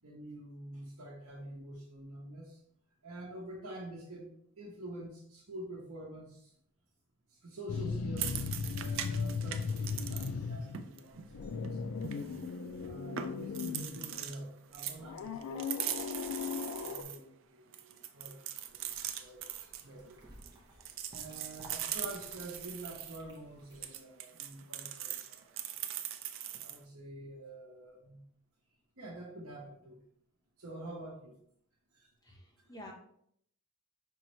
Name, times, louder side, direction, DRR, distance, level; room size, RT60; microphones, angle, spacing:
voice 1, 0.0-2.6 3.0-4.3 4.6-6.5 7.3-12.0 12.8-18.4 18.7-18.9 19.2-20.2 21.1-25.5 26.5-28.2 29.0-30.0 30.6-31.4 31.9-32.1, right 1 dB, 75° right, -5 dB, 0.9 m, -47 dB
sound 1, 7.7-10.8 11.1-14.2 15.0-17.0, left 5 dB, 90° left, 0.4 m, -37 dB
sound 2, 8.2-10.3 10.6-12.6 12.8-12.9 13.2-14.4 14.7-17.2 17.7-20.5 20.8-23.2 23.7-26.8, right 10 dB, 60° right, 0.4 m, -41 dB
sound 3, 18.6-23.9, right 1 dB, 20° right, 0.9 m, -58 dB
voice 2, 32.2-32.9, left 1 dB, 15° left, -1 dB, 0.8 m, -50 dB
5.5 x 3.0 x 3.0 m, 0.69 s
head